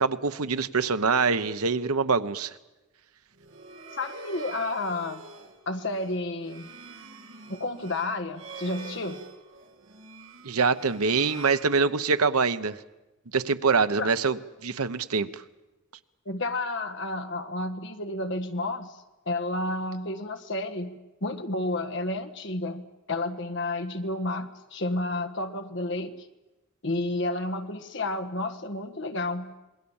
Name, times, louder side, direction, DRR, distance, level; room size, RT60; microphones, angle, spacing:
voice 1, 0.0-2.5 10.4-12.8 13.3-15.4, right 4 dB, 85° right, 12 dB, 1.0 m, -25 dB
sound 1, 3.3-12.4, right 4 dB, 65° right, 2.0 m, -45 dB
voice 2, 3.9-5.2 5.7-6.7 7.5-9.2 14.0-14.1 16.2-26.1 26.8-29.6, left 2 dB, 55° left, 8 dB, 1.5 m, -31 dB
27.0 x 22.0 x 7.2 m, 1.0 s
head